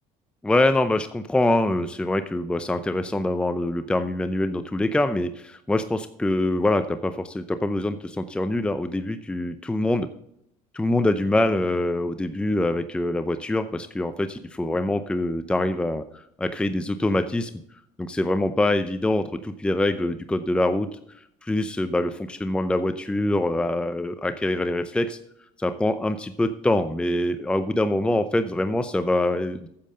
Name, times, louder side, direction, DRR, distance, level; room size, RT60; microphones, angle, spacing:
voice 1, 0.4-10.1 10.7-17.5 18.0-20.9 21.4-25.2 25.6-29.7, left 1 dB, 5° left, 10 dB, 0.6 m, -24 dB
8.7 x 7.4 x 5.5 m, 0.73 s
supercardioid pair, 105°, 15 cm